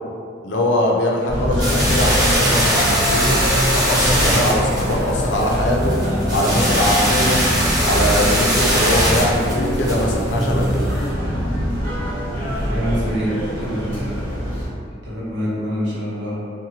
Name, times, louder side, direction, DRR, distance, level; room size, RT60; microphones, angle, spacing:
voice 1, 0.4-3.4 3.8-5.9 6.3-7.4 7.8-10.8, left 1 dB, 70° left, -1 dB, 0.4 m, -21 dB
sound 1, 1.3-14.7, equal, 45° right, 1.0 m, -23 dB
sound 2, 1.6-11.0, right 1 dB, 20° right, 0.6 m, -21 dB
voice 2, 12.7-14.2 15.0-16.4, equal, 70° right, -7 dB, 0.8 m, -25 dB
2.8 x 2.1 x 2.7 m, 2.3 s
head